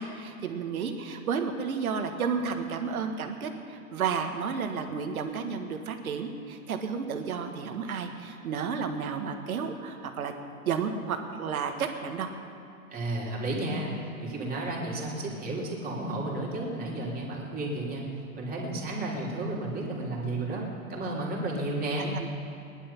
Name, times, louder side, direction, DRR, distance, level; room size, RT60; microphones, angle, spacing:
voice 1, 0.0-10.4 10.7-12.3 22.0-22.3, right 6 dB, 75° right, 6 dB, 1.7 m, -32 dB
voice 2, 12.9-13.9 14.2-18.0 18.3-20.6 20.9-22.1, right 2 dB, 20° right, -4 dB, 3.6 m, -32 dB
19.0 x 11.0 x 5.9 m, 2.5 s
hypercardioid pair, 115°, 43 cm